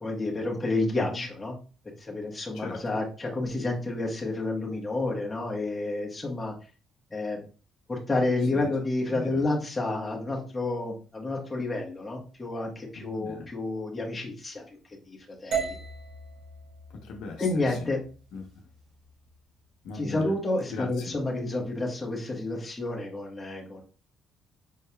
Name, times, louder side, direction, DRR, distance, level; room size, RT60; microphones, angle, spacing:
voice 1, 0.0-1.6 2.0-6.5 7.1-7.4 7.9-14.6 15.1-15.8 17.4-18.0 20.0-23.8, left 2 dB, 15° left, -2 dB, 1.1 m, -30 dB
voice 2, 2.5-3.0 8.5-9.5 12.9-13.5 16.9-17.9 18.3-18.7 19.8-20.3 20.7-21.2 22.5-22.7, left 4 dB, 85° left, 2 dB, 0.9 m, -40 dB
sound 1, 15.5-19.6, right 6 dB, 70° right, 1.9 m, -37 dB
5.6 x 3.4 x 2.2 m, 0.36 s
cardioid pair, 140°, 0 cm